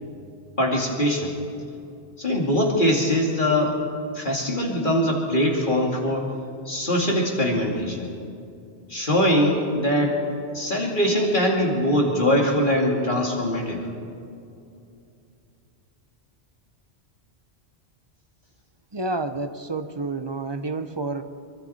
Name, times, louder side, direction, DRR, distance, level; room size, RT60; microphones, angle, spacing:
voice 1, 0.6-1.3 2.2-3.8 4.1-6.3 6.7-8.1 8.9-10.2 10.5-13.8, equal, 45° left, -1 dB, 2.7 m, -22 dB
voice 2, 18.9-21.2, right 3 dB, 25° right, 9 dB, 0.8 m, -29 dB
25.5 x 23.5 x 4.3 m, 2.5 s
omnidirectional pair, 1.1 m